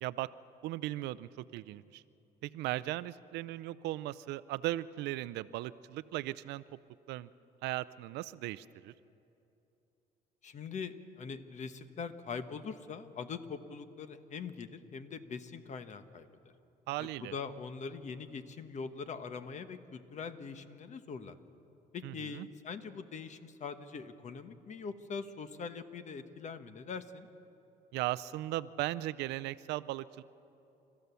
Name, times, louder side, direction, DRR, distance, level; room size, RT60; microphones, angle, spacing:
voice 1, 0.6-2.0 2.4-6.6 7.1-7.3 7.6-8.9 16.9-17.3 22.0-22.5 27.9-30.2, right 16 dB, 85° right, 16 dB, 0.5 m, -37 dB
voice 2, 10.4-16.3 17.0-21.4 21.9-27.3, left 5 dB, 45° left, 10 dB, 1.1 m, -42 dB
29.5 x 14.0 x 6.9 m, 2.9 s
cardioid pair, 110°, 17 cm